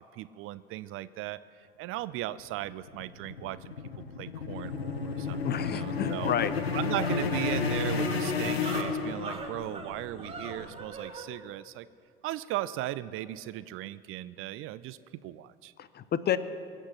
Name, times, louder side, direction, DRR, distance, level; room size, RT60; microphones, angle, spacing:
voice 1, 0.0-3.7 4.2-5.4 5.7-6.3 6.7-11.9 12.2-15.7, right 15 dB, 45° right, 17 dB, 0.5 m, -37 dB
sound 1, 2.4-9.6, left 5 dB, 85° left, 1.0 m, -31 dB
sound 2, 4.5-10.8, right 4 dB, 80° right, 1.1 m, -48 dB
voice 2, 5.4-6.5 15.8-16.4, left 9 dB, 35° left, 14 dB, 0.7 m, -30 dB
sound 3, 6.3-11.3, right 3 dB, 20° right, 2.3 m, -42 dB
23.0 x 8.2 x 6.0 m, 2.3 s
figure-of-eight pair, 60°, 30 cm